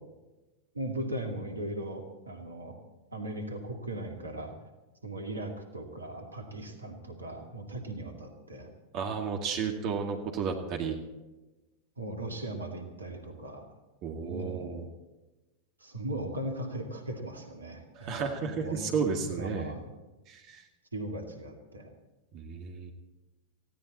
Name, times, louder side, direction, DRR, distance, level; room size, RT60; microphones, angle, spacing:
voice 1, 0.7-2.8 3.1-4.5 5.0-8.7 12.0-13.7 14.2-14.8 15.8-18.9 19.3-19.8 20.9-21.9, right 1 dB, 80° right, 4 dB, 2.3 m, -38 dB
voice 2, 8.9-11.0 14.0-14.9 18.0-19.8 20.3-20.6 22.3-22.9, right 5 dB, 40° right, 3 dB, 2.0 m, -33 dB
19.0 x 15.5 x 4.2 m, 1.1 s
figure-of-eight pair, 90°, 0 cm